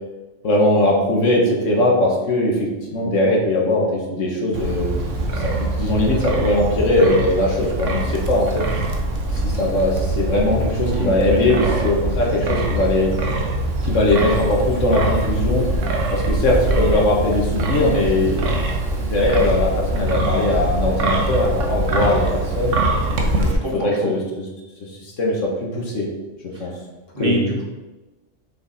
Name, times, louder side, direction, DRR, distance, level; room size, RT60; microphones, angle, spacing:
voice 1, 0.4-8.6 9.3-13.1 13.8-15.7 16.1-18.8 19.0-22.7 23.4-23.5 23.8-24.2 25.0-26.1 26.6-26.7 27.2-27.5, left 1 dB, 80° left, -1 dB, 1.8 m, -20 dB
Wind, 4.5-23.5, right 2 dB, 80° right, 1.3 m, -23 dB
voice 2, 10.8-11.7 23.5-24.1 26.5-26.7 27.1-27.6, right 1 dB, 45° right, -2 dB, 1.6 m, -26 dB
6.6 x 5.5 x 4.1 m, 1.1 s
omnidirectional pair, 1.3 m